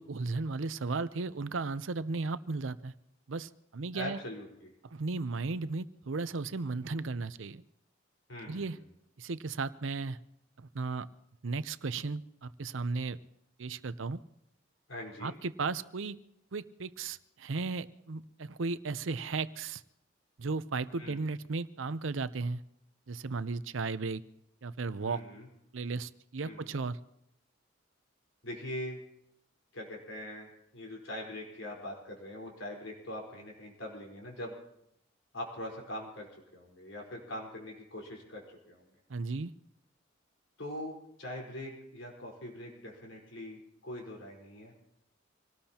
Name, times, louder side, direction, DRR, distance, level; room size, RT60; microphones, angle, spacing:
voice 1, 0.0-2.9 3.3-4.2 4.9-7.6 8.5-8.8 9.2-10.2 10.6-11.1 11.4-13.2 13.6-14.2 15.2-16.2 16.5-19.8 20.4-22.6 23.1-24.2 24.6-25.2 25.7-27.0 39.1-39.5, right 3 dB, 85° right, 15 dB, 0.7 m, -35 dB
voice 2, 3.9-4.7 8.3-8.8 14.9-15.3 21.0-21.2 25.0-25.5 26.4-26.8 28.4-29.0 29.7-34.6 35.3-39.0 40.6-44.7, left 1 dB, 85° left, -1 dB, 4.5 m, -42 dB
26.0 x 18.5 x 2.9 m, 0.81 s
head